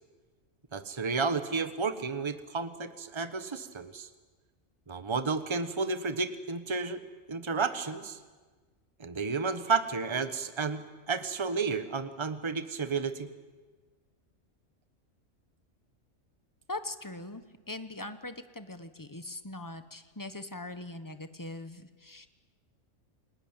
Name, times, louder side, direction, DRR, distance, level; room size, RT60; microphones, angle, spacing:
voice 1, 0.7-4.1 4.9-7.0 7.3-8.2 9.0-13.3, right 4 dB, 25° right, 11 dB, 1.2 m, -32 dB
voice 2, 16.7-22.3, left 2 dB, 15° left, 10 dB, 1.1 m, -41 dB
29.0 x 19.0 x 8.9 m, 1.4 s
omnidirectional pair, 1.3 m